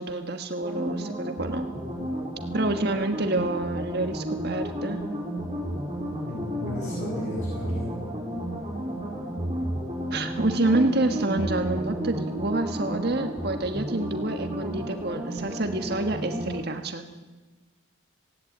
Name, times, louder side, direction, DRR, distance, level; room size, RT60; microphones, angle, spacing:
voice 1, 0.0-1.7 2.5-5.0 10.1-17.0, right 2 dB, 50° right, 6 dB, 1.5 m, -27 dB
sound 1, 0.6-16.6, equal, 20° right, 5.5 m, -32 dB
voice 2, 6.2-7.9, left 1 dB, 35° left, -5 dB, 7.4 m, -34 dB
19.0 x 17.0 x 8.8 m, 1.2 s
head